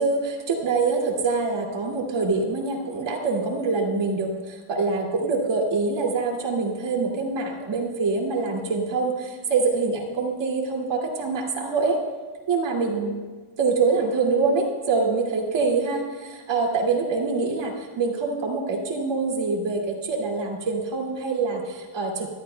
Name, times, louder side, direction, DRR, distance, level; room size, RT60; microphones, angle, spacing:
voice 1, 0.0-12.0 12.5-13.2 13.6-22.3, right 4 dB, 60° right, -1 dB, 2.4 m, -25 dB
23.0 x 13.5 x 2.2 m, 1.4 s
wide cardioid pair, 170°, 49 cm